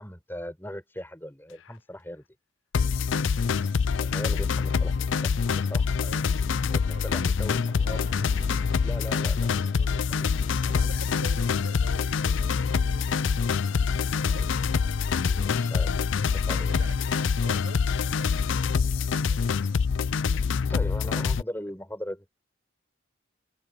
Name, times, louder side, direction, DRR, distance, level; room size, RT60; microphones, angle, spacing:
voice 1, 0.0-2.3 4.0-6.1 6.5-8.0 8.8-10.3 15.2-16.7 20.7-22.3, equal, 10° left, 5.2 m, -39 dB
sound 1, 2.7-21.4, left 5 dB, 70° left, 0.4 m, -25 dB
sound 2, 5.0-9.5 10.0-12.1 12.5-12.6 12.9-14.7, right 1 dB, 35° right, 2.5 m, -52 dB
voice 2, 6.0-6.4 6.9-7.7 9.3-10.3 10.6-13.1 14.3-14.7 16.5-17.1 17.4-18.6 19.0-19.7, right 2 dB, 55° right, 5.9 m, -47 dB
head